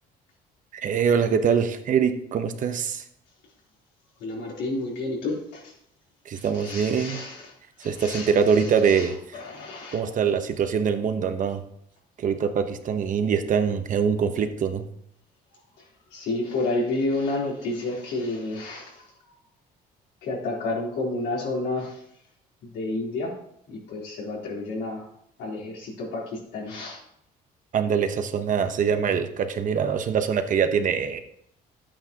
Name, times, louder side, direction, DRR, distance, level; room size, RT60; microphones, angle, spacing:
voice 1, 0.7-3.0 6.2-7.2 7.8-9.4 9.9-11.6 12.2-14.9 27.7-31.2, right 7 dB, 50° right, 8 dB, 1.0 m, -24 dB
voice 2, 4.2-5.4 6.6-7.4 7.8-8.3 9.0-9.1 9.3-10.0 16.1-18.9 20.2-21.9 22.7-23.3 23.7-25.0 25.4-27.0, left 2 dB, 85° left, -3 dB, 3.6 m, -30 dB
11.5 x 8.7 x 2.9 m, 0.72 s
cardioid pair, 110°, 17 cm